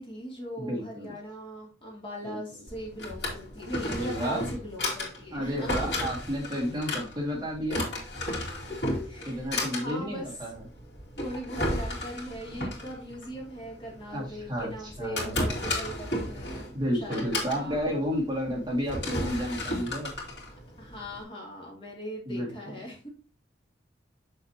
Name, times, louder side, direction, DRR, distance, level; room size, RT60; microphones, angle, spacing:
voice 1, 0.0-6.1 8.9-10.4 11.2-16.7 16.9-18.0 20.8-23.1, equal, 30° left, -2 dB, 2.6 m, -40 dB
voice 2, 0.6-1.1 2.2-2.4 3.9-4.4 5.3-7.9 9.3-10.6 14.1-15.4 16.7-20.1 22.3-22.5, equal, 25° right, -2 dB, 2.2 m, -31 dB
Drawer open or close, 2.7-21.2, left 1 dB, 70° left, 2.8 m, -34 dB
7.5 x 6.6 x 2.9 m, 0.34 s
head